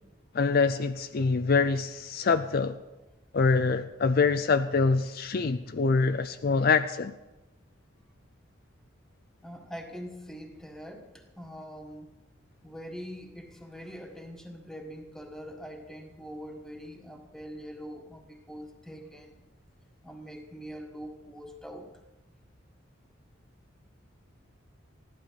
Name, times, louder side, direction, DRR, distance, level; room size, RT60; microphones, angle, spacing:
voice 1, 0.3-2.8 3.3-7.1, left 4 dB, 50° left, 0.5 m, -25 dB
voice 2, 9.4-12.1 12.6-19.3 20.0-21.9, equal, ahead, 1.5 m, -43 dB
15.5 x 12.0 x 5.8 m
head